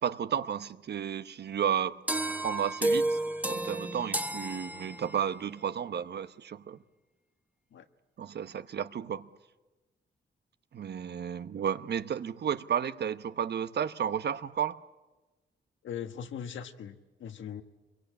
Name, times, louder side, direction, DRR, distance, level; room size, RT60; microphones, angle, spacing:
voice 1, 0.0-2.0 2.4-3.2 3.4-6.8 8.2-9.3 10.7-14.8, right 8 dB, 60° right, 0.9 m, -32 dB
sound 1, 2.1-5.4, right 1 dB, 10° right, 1.1 m, -31 dB
voice 2, 15.8-17.6, left 8 dB, 85° left, 1.4 m, -40 dB
25.0 x 22.5 x 8.6 m
cardioid pair, 95°, 19 cm